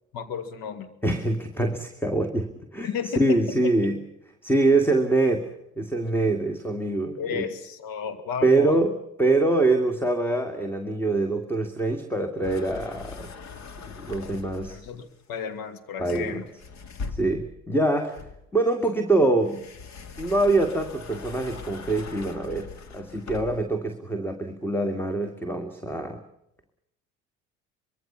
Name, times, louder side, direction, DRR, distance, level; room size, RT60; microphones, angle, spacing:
voice 1, 0.1-0.9 2.8-3.7 7.2-8.8 14.7-16.5, left 7 dB, 60° left, 10 dB, 2.6 m, -33 dB
voice 2, 1.0-2.9 3.2-4.0 4.4-7.4 8.4-13.3 14.0-14.8 16.0-16.4 17.1-18.2 18.5-19.7 20.2-26.2, right 2 dB, 5° left, 7 dB, 2.2 m, -24 dB
sound 1, 12.4-15.0 16.1-17.6 18.1-23.7, left 4 dB, 40° left, 2.2 m, -41 dB
25.0 x 22.0 x 5.7 m, 0.83 s
hypercardioid pair, 60°, 41 cm